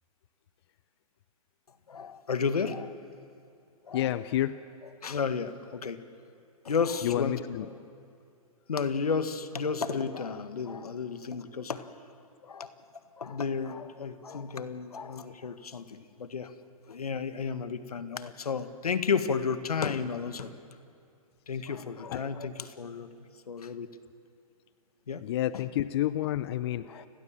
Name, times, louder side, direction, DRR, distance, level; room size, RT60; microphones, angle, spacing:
voice 1, 1.9-2.9 3.9-4.1 5.0-6.0 6.7-7.7 8.7-11.9 12.4-12.7 13.2-16.5 16.9-20.5 21.5-23.1 23.5-23.9 25.1-25.2 26.9-27.1, left 5 dB, 90° left, 10 dB, 1.7 m, -32 dB
voice 2, 3.9-4.6 7.0-7.7 22.1-22.3 25.2-27.1, left 13 dB, 45° left, 14 dB, 0.7 m, -30 dB
29.5 x 21.0 x 7.5 m, 2.5 s
hypercardioid pair, 140°, 19 cm